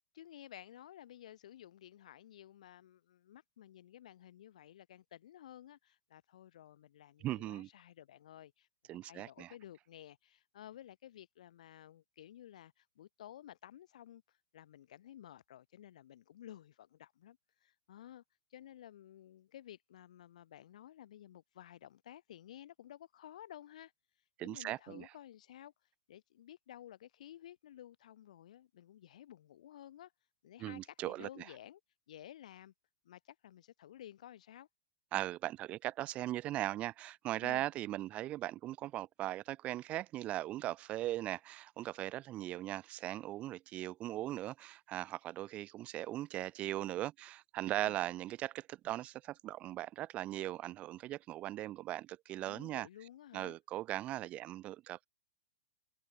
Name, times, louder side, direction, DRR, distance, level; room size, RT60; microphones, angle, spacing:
voice 1, 0.1-18.2 18.5-23.9 24.4-25.7 26.1-30.1 30.4-31.8 32.1-32.7 33.0-34.7 37.4-37.7 47.8-48.0 52.4-53.6, left 11 dB, 70° left, 8.0 m, -54 dB
voice 2, 7.2-7.7 8.9-9.5 24.4-25.1 30.6-31.4 35.1-52.9 53.3-55.1, right 14 dB, 35° right, 4.5 m, -39 dB
open air
hypercardioid pair, 120°, 4 cm